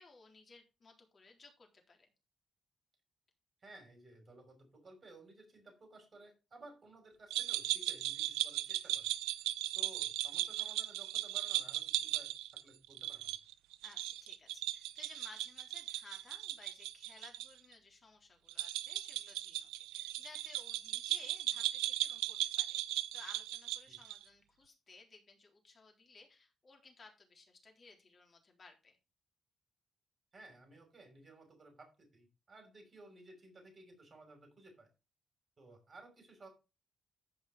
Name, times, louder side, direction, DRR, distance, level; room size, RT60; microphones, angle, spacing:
voice 1, 0.0-2.1 13.8-29.0, left 4 dB, 50° left, 2 dB, 3.6 m, -58 dB
voice 2, 3.6-9.1 9.4-12.3 12.6-13.4 23.9-24.0 30.3-34.9 35.6-36.5, right 2 dB, 45° right, 4 dB, 5.8 m, -57 dB
sound 1, 7.3-17.5 17.7-17.8 18.5-24.2, right 15 dB, 80° right, 0.4 m, -37 dB
14.0 x 5.6 x 3.6 m, 0.29 s
hypercardioid pair, 40°, 0 cm